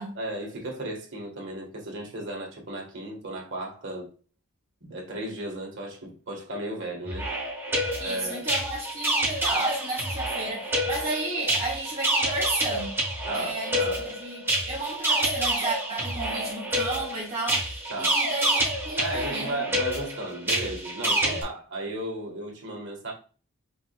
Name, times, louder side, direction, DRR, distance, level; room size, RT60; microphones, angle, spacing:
voice 1, 0.1-4.1 4.9-7.3 8.0-8.5 13.2-14.1 17.9-18.2 19.0-23.1, right 1 dB, 55° right, 1.8 m, -35 dB
sound 1, 7.0-21.4, right 1 dB, 10° right, 1.3 m, -28 dB
voice 2, 8.0-13.0 13.3-14.4 14.6-19.6, right 2 dB, 30° right, 1.7 m, -32 dB
5.3 x 3.7 x 2.5 m
head